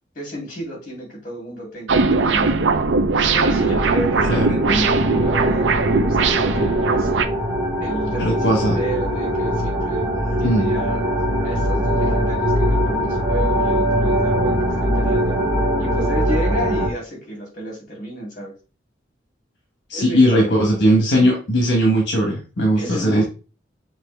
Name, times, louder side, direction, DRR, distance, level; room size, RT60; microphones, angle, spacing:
voice 1, 0.1-2.7 3.3-7.1 7.8-10.1 10.4-11.0 11.4-15.4 15.8-18.5 19.9-20.6 22.8-23.2, right 1 dB, 45° left, -2 dB, 2.5 m, -31 dB
sound 1, 1.9-7.3, right 4 dB, 85° right, 0.5 m, -19 dB
sound 2, 3.5-16.9, equal, 15° right, 1.5 m, -22 dB
voice 2, 4.3-4.6 8.2-8.8 10.4-10.7 19.9-23.2, equal, 75° left, 0 dB, 1.0 m, -18 dB
5.9 x 2.7 x 3.3 m, 0.33 s
head